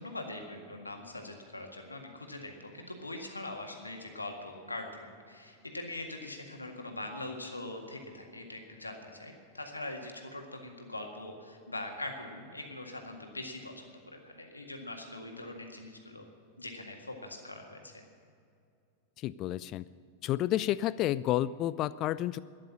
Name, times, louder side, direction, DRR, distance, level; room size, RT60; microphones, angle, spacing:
voice 1, 0.0-16.2 16.6-18.0, left 2 dB, 80° left, 3 dB, 1.8 m, -42 dB
voice 2, 19.2-19.8 20.2-22.4, left 13 dB, 35° left, 17 dB, 0.3 m, -30 dB
13.0 x 9.9 x 9.9 m, 2.4 s
figure-of-eight pair, 90°, 0 cm